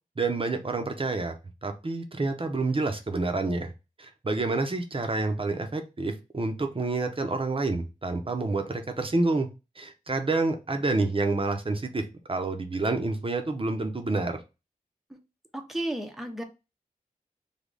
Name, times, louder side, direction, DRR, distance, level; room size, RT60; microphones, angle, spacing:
voice 1, 0.2-1.4 1.6-3.7 4.0-9.5 9.8-14.4, right 3 dB, 35° right, 6 dB, 0.7 m, -28 dB
voice 2, 15.5-16.4, right 1 dB, ahead, 4 dB, 0.7 m, -33 dB
3.4 x 2.3 x 3.9 m, 0.27 s
wide cardioid pair, 75°, 15 cm